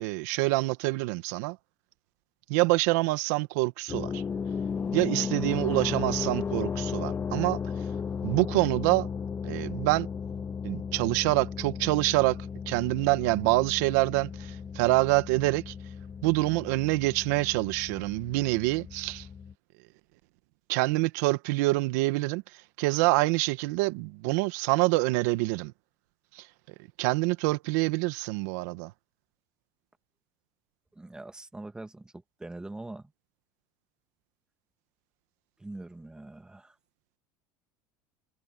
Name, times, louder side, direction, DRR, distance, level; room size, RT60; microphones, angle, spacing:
voice 1, 0.0-1.6 2.5-4.2 4.9-7.6 8.2-9.1 9.4-10.1 10.6-12.4 12.7-15.7 16.2-19.3 20.7-22.4 22.8-25.7 26.3-26.5 27.0-28.9, right 22 dB, 75° right, 1.3 m, -26 dB
sound 1, 3.9-19.5, left 6 dB, 25° left, 1.0 m, -35 dB
voice 2, 30.9-33.1 35.6-36.8, right 2 dB, 10° right, 1.9 m, -43 dB
supercardioid pair, 115°, 9 cm